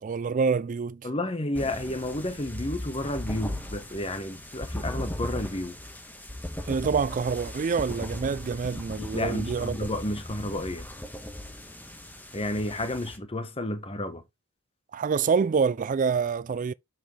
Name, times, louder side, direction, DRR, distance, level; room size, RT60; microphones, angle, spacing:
voice 1, 0.0-1.0 6.6-9.8 14.9-16.7, right 5 dB, 35° right, 0.3 m, -26 dB
voice 2, 1.0-5.7 9.0-10.9 12.3-14.2, left 1 dB, 25° left, 1.2 m, -31 dB
sound 1, 1.5-13.2, left 1 dB, 10° left, 1.4 m, -38 dB
8.0 x 5.9 x 3.3 m
head